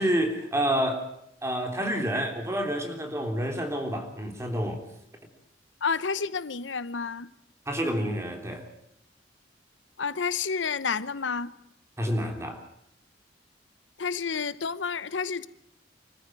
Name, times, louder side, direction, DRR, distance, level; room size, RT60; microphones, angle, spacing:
voice 1, 0.0-4.8 7.7-8.7 12.0-12.6, equal, 15° right, 3.4 m, -29 dB
voice 2, 5.8-7.3 10.0-11.5 14.0-15.5, left 5 dB, 85° left, 0.9 m, -30 dB
25.0 x 14.5 x 9.1 m
head